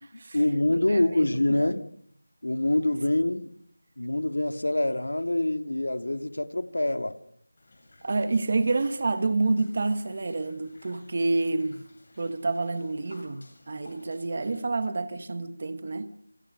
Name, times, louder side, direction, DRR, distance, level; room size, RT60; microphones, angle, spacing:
voice 1, 0.1-1.9 2.4-3.5 4.0-7.2, left 1 dB, 85° left, 2.6 m, -25 dB
voice 2, 0.7-1.3 1.6-1.7 8.0-11.8 12.2-16.1, right 3 dB, 25° right, 1.3 m, -28 dB
sound 1, 7.6-14.6, left 2 dB, 30° left, 7.6 m, -56 dB
27.5 x 26.0 x 6.1 m
figure-of-eight pair, 180°, 0 cm